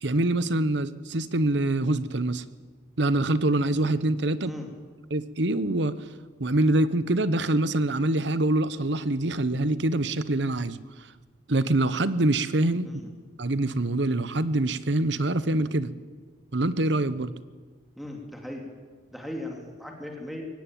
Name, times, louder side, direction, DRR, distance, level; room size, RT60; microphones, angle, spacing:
voice 1, 0.0-2.4 3.0-4.5 5.1-6.0 6.4-10.8 11.5-12.9 13.4-15.9 16.5-17.3, right 2 dB, 65° right, 15 dB, 1.1 m, -25 dB
voice 2, 18.0-18.7 19.1-20.4, left 1 dB, ahead, 1 dB, 2.8 m, -37 dB
23.0 x 18.0 x 9.2 m, 1.5 s
head